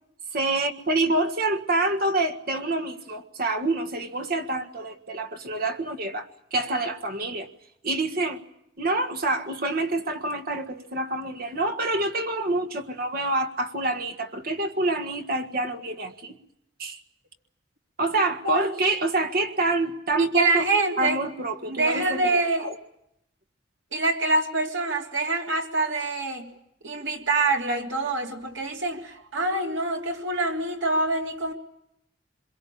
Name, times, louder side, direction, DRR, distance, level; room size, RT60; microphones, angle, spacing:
voice 1, 0.3-7.5 7.8-8.4 8.8-16.3 16.8-17.0 18.0-20.6 21.0-22.8, right 2 dB, 50° right, 1.7 m, -27 dB
voice 2, 20.2-21.2 21.7-22.7 23.9-26.5 26.8-31.5, right 2 dB, 75° right, 3.4 m, -25 dB
26.0 x 22.5 x 8.7 m
head